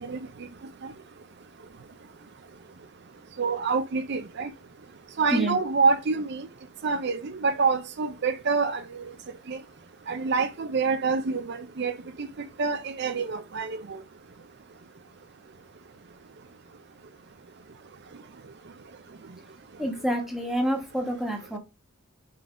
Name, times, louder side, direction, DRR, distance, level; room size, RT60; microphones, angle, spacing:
voice 1, 3.4-4.5 5.2-6.5 6.8-9.1 9.5-9.6 10.1-12.3 12.6-13.8, right 4 dB, 50° right, 0.5 m, -26 dB
voice 2, 19.8-21.6, right 1 dB, ahead, 1.3 m, -27 dB
5.6 x 3.9 x 4.9 m
head